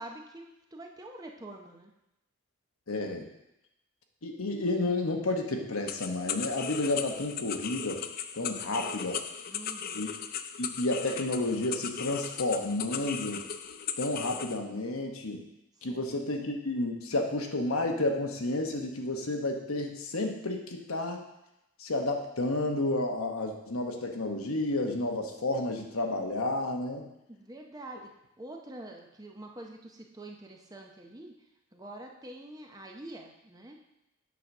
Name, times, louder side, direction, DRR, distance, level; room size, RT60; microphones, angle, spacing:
voice 1, 0.0-1.9 9.5-10.0 15.9-16.2 27.3-28.1 28.4-31.3 31.7-33.8, right 1 dB, 15° right, 2 dB, 0.7 m, -46 dB
voice 2, 2.9-3.3 4.2-8.0 8.3-9.2 9.9-10.1 10.6-13.4 14.0-15.4 15.8-21.2 21.8-27.0, left 2 dB, 75° left, 3 dB, 1.0 m, -31 dB
sound 1, 5.9-14.6, left 8 dB, 40° left, 0.4 m, -37 dB
8.4 x 4.0 x 6.0 m, 0.88 s
head